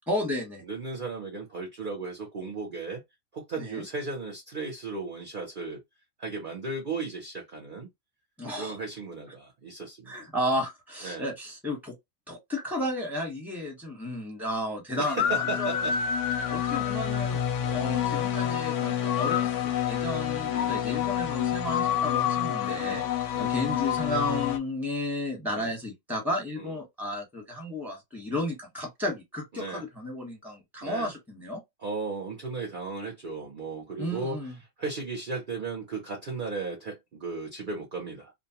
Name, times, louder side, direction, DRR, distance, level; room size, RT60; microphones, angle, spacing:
voice 1, 0.1-0.6 3.6-3.8 8.4-8.8 10.1-11.9 12.3-15.3 15.6-15.8 16.5-17.4 17.7-23.0 23.4-31.6 34.0-34.5, left 1 dB, ahead, 1.0 m, -33 dB
voice 2, 0.6-3.0 3.3-5.8 6.2-7.9 8.6-10.3 11.0-11.3 14.9-16.0 16.7-16.8 17.6-17.8 20.6-20.8 22.6-23.0 23.3-23.5 25.6-25.7 26.6-26.8 29.5-29.8 30.8-31.1 31.8-34.4 34.8-38.3, right 3 dB, 45° right, 0.7 m, -36 dB
sound 1, 15.2-24.6, left 9 dB, 65° left, 0.8 m, -28 dB
2.6 x 2.1 x 2.8 m
omnidirectional pair, 1.6 m